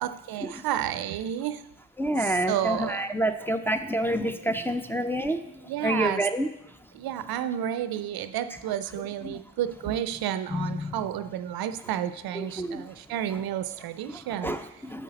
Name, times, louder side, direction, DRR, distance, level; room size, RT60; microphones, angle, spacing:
voice 1, 0.0-1.7 2.2-3.1 5.7-6.2 6.9-14.6, right 11 dB, 65° right, 13 dB, 0.5 m, -31 dB
voice 2, 2.0-6.5 8.9-9.4 9.8-10.0 10.5-11.3 12.3-13.0 13.3-13.4 14.1-15.0, right 1 dB, 5° left, 5 dB, 0.5 m, -29 dB
7.3 x 5.5 x 4.0 m, 0.85 s
hypercardioid pair, 45°, 40 cm